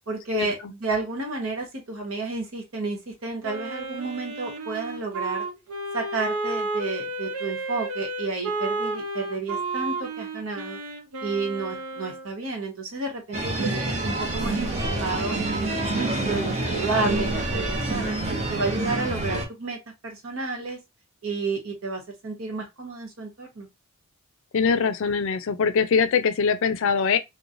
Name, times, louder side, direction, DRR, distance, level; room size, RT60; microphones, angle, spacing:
voice 1, 0.1-5.4 5.9-10.8 11.2-14.7 15.0-18.2 18.5-19.8 20.0-20.8 21.2-23.7, right 3 dB, 65° right, 1.0 m, -31 dB
Wind instrument woodwind instrument, 3.4-12.3, right 2 dB, 90° right, 0.7 m, -32 dB
sound 1, 13.3-19.5, right 2 dB, 35° right, 0.8 m, -27 dB
voice 2, 24.5-27.2, left 6 dB, 60° left, 0.4 m, -22 dB
3.0 x 2.2 x 2.5 m
head